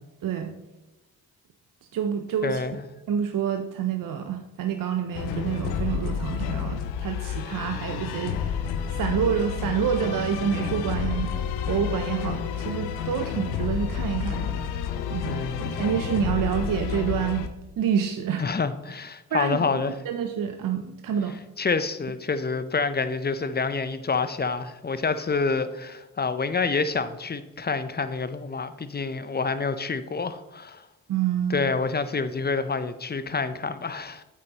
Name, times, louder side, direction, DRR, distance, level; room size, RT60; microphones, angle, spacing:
voice 1, 0.2-0.5 1.9-2.6 3.1-8.6 8.9-11.3 11.7-14.7 15.1-17.5 17.8-18.4 19.3-19.6 20.0-21.4 31.1-31.7, right 8 dB, 60° right, 6 dB, 0.7 m, -28 dB
voice 2, 2.4-2.8 15.2-15.6 18.4-19.9 21.6-30.8 31.5-34.2, left 4 dB, 25° left, 12 dB, 0.7 m, -27 dB
sound 1, 5.1-17.5, left 8 dB, 90° left, 0.6 m, -30 dB
8.5 x 8.4 x 3.0 m, 1.0 s
hypercardioid pair, 40°, 38 cm